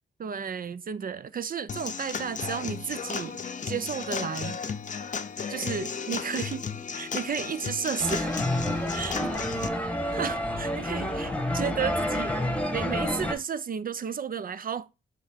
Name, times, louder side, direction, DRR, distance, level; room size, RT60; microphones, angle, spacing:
voice 1, 0.2-3.4 3.7-4.6 5.5-6.6 6.9-8.4 8.9-9.3 10.1-12.4 12.7-14.9, right 7 dB, 45° right, 0.5 m, -33 dB
Human voice / Acoustic guitar / Drum, 1.7-9.7, left 6 dB, 40° left, 0.6 m, -34 dB
sound 1, 8.0-13.3, left 1 dB, 5° left, 1.3 m, -29 dB
7.0 x 3.2 x 4.3 m
cardioid pair, 90°, 21 cm